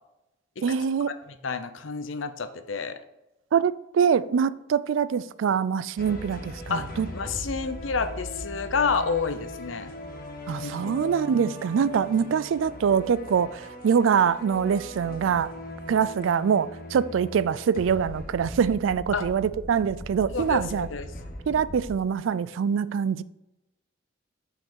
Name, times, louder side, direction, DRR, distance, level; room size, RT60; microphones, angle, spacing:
voice 1, 0.6-1.1 3.5-7.1 10.5-15.5 15.9-20.9 21.5-23.2, right 7 dB, 80° right, 0.3 m, -24 dB
voice 2, 1.3-3.0 6.7-6.9 7.1-9.9 10.6-11.0 19.1-19.2 20.3-21.1, left 5 dB, 90° left, 0.7 m, -29 dB
sound 1, 6.0-22.0, left 1 dB, 50° left, 1.2 m, -39 dB
5.8 x 5.7 x 4.5 m
head